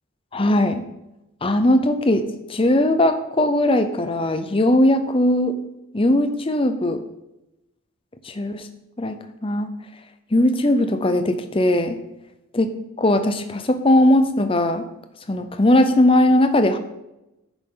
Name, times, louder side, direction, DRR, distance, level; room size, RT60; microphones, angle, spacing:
voice 1, 0.3-0.8 1.4-5.6 5.9-7.0 8.2-8.7 9.0-9.7 10.3-12.0 12.6-12.7 13.0-14.8 15.3-16.8, left 1 dB, 25° left, 9 dB, 0.6 m, -19 dB
9.9 x 7.0 x 3.8 m, 0.93 s
head